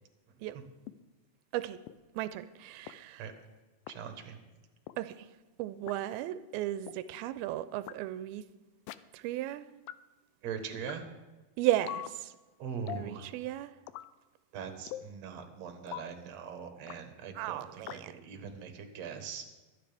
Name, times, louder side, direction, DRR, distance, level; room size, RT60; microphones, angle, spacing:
sound 1, 0.9-1.0 1.9-2.0 2.9-3.0 3.9-4.0 4.9-5.0 5.9-6.0 6.9-7.0 7.9-8.0 8.9-9.0 9.9-10.0 10.9-11.0 11.9-12.1 12.9-13.1 13.9-14.1 14.9-15.1 15.9-16.1 16.9-17.0 17.9-18.0, left 14 dB, 80° left, 2.2 m, -41 dB
voice 1, 2.2-3.3 5.0-5.3 5.6-8.4 9.1-9.7 11.6-12.3 12.9-13.7 17.4-18.1, right 14 dB, 90° right, 2.4 m, -35 dB
voice 2, 3.9-4.4 10.4-11.0 12.6-13.3 14.5-17.6 17.9-19.5, right 6 dB, 60° right, 2.1 m, -41 dB
23.0 x 9.8 x 3.4 m
omnidirectional pair, 4.3 m